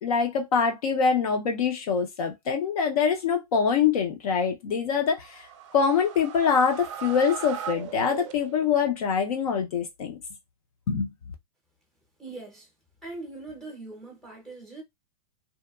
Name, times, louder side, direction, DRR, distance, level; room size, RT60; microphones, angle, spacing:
voice 1, 0.0-5.5 5.7-10.2 10.9-11.1, left 6 dB, 65° left, 0.5 m, -24 dB
sound 1, 5.1-8.9, right 9 dB, 50° right, 0.4 m, -38 dB
voice 2, 12.2-12.7 13.0-14.8, right 3 dB, ahead, 0.6 m, -41 dB
2.7 x 2.2 x 2.2 m
supercardioid pair, 165°, 20 cm